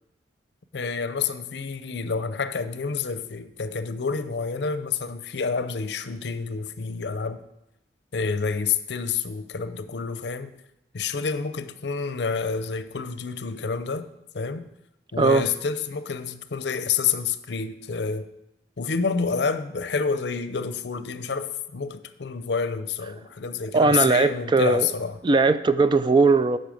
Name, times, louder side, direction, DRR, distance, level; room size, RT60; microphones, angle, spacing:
voice 1, 0.7-7.4 8.1-10.5 10.9-14.1 14.3-14.7 15.1-18.3 18.8-25.2, left 5 dB, 70° left, 0.6 m, -28 dB
voice 2, 23.7-24.9 25.2-26.6, right 3 dB, 25° right, 0.3 m, -19 dB
8.5 x 5.5 x 7.6 m
head